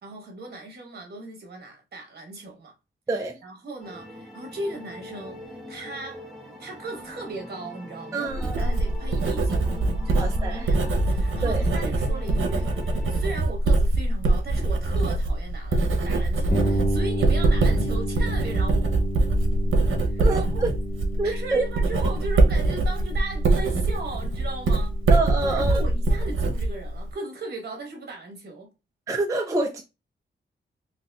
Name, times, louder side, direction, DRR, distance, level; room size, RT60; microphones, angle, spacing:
voice 1, 0.0-2.7 3.4-6.3 6.6-12.7 13.1-19.1 20.0-20.7 21.2-25.0 25.4-28.7, right 2 dB, 55° right, 1.3 m, -37 dB
voice 2, 3.1-3.4 8.1-8.7 10.1-10.6 11.4-11.7 20.2-20.7 21.2-21.6 25.1-25.8 29.1-29.8, right 2 dB, 15° right, 0.3 m, -26 dB
sound 1, 3.8-13.3, left 1 dB, ahead, 1.0 m, -42 dB
Writing, 8.3-27.1, right 2 dB, 85° right, 0.7 m, -23 dB
sound 2, 16.5-26.2, equal, 40° left, 1.0 m, -33 dB
4.0 x 2.6 x 2.3 m
wide cardioid pair, 180°, 20 cm